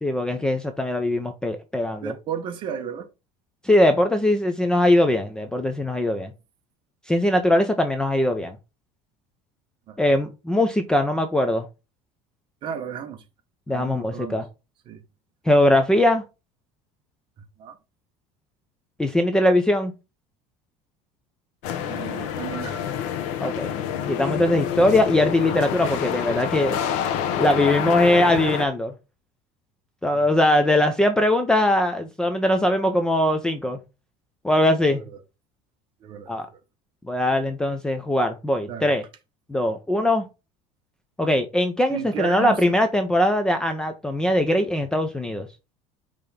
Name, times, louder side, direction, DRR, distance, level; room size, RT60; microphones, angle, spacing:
voice 1, 0.0-2.1 3.6-6.3 7.1-8.6 10.0-11.7 13.7-14.5 15.5-16.2 19.0-19.9 23.4-23.7 24.1-26.8 27.4-28.9 30.0-33.8 34.4-35.0 36.3-36.5 37.0-39.0 39.5-40.3 41.2-45.5, left 1 dB, 5° left, 0.4 m, -21 dB
voice 2, 2.0-3.1 9.9-10.0 12.6-13.2 13.7-14.4 14.9-15.0 17.6-17.8 21.8-22.9 30.1-30.3 34.8-35.2 36.0-36.6 38.7-39.0 41.9-42.8, right 8 dB, 35° right, 0.9 m, -33 dB
sound 1, 21.6-28.7, left 9 dB, 60° left, 0.9 m, -27 dB
5.1 x 3.4 x 5.6 m
cardioid pair, 180°, 14 cm